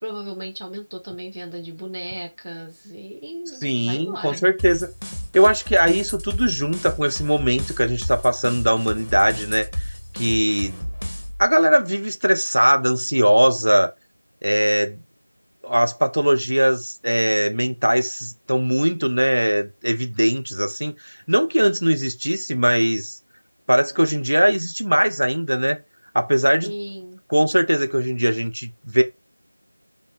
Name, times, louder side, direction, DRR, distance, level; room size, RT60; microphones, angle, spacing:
voice 1, 0.0-4.5 26.6-27.2, right 1 dB, 30° right, 0.5 m, -34 dB
voice 2, 3.6-4.9 5.3-9.7 10.1-10.9 11.4-13.9 14.4-15.0 15.6-23.2 23.7-25.8 26.1-26.7 27.3-29.0, equal, 85° right, 0.4 m, -20 dB
sound 1, 4.6-11.4, equal, 45° left, 0.5 m, -31 dB
2.1 x 2.0 x 3.0 m
figure-of-eight pair, 180°, 0 cm